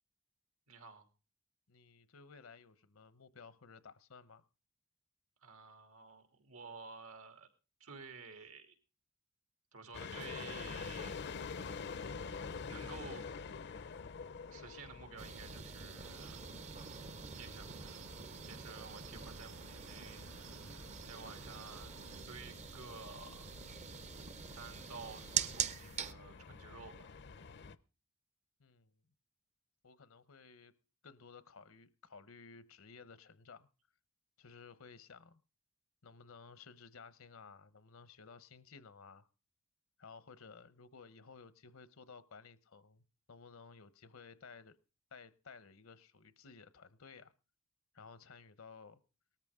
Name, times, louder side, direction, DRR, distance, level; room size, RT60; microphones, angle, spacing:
voice 1, 0.7-1.1 5.4-7.5 7.8-8.7 9.7-11.2 11.9-12.3 12.7-13.2 14.5-16.4 17.4-18.1 18.4-20.2 21.1-22.0 22.3-23.5 24.5-27.1, right 4 dB, 90° right, 2.9 m, -52 dB
voice 2, 1.7-4.4 28.6-28.9 29.8-30.7 31.0-33.7 34.4-35.4 36.0-39.3 40.0-44.8 45.1-47.3 47.9-49.0, left 5 dB, 75° left, 0.9 m, -56 dB
sound 1, 9.9-27.8, left 5 dB, 55° left, 0.6 m, -48 dB
sound 2, 15.2-26.1, right 7 dB, 35° right, 0.6 m, -44 dB
Cricket, 16.0-22.2, right 4 dB, 70° right, 1.5 m, -56 dB
18.5 x 13.5 x 3.7 m
head